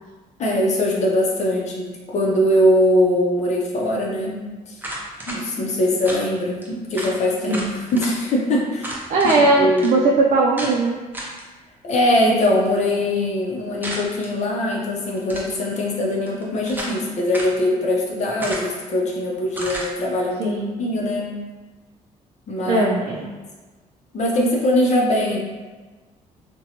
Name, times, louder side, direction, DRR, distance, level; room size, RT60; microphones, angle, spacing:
voice 1, 0.4-4.4 4.7-4.8 5.3-9.0 9.6-9.9 11.8-21.3 22.5-22.9 24.1-25.4, left 1 dB, 55° left, -2 dB, 0.6 m, -21 dB
sound 1, 4.8-5.4 6.0-6.2 6.6-6.7 6.9-7.1 7.5-8.1 8.8-9.4 9.8-9.9 10.6-10.7 11.1-11.4 13.8-14.3 15.2-15.6 16.3-17.0 17.3-17.6 18.4-18.8 19.5-19.9, right 1 dB, 15° right, 0.6 m, -32 dB
voice 2, 9.1-11.0 20.4-20.8 22.7-23.3, right 2 dB, 60° right, -2 dB, 0.4 m, -19 dB
2.7 x 2.2 x 2.8 m, 1.3 s
cardioid pair, 90°, 14 cm